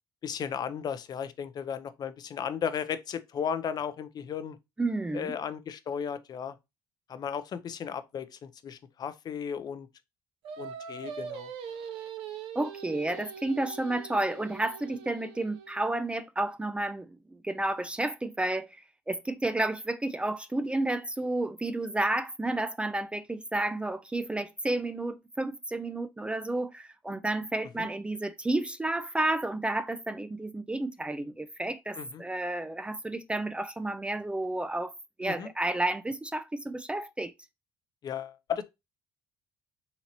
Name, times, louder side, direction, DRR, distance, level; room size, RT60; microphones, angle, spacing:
voice 1, 0.2-4.6 5.1-6.6 7.1-9.9 10.6-11.5 27.8-27.9 31.9-32.2 35.2-35.5 38.0-38.6, left 7 dB, 45° left, 0.5 m, -35 dB
voice 2, 4.8-5.3 12.6-34.9 35.2-37.3, right 2 dB, 10° right, 0.3 m, -31 dB
Singing, 10.4-15.8, right 6 dB, 80° right, 0.6 m, -42 dB
4.0 x 2.9 x 2.8 m
supercardioid pair, 85°, 9 cm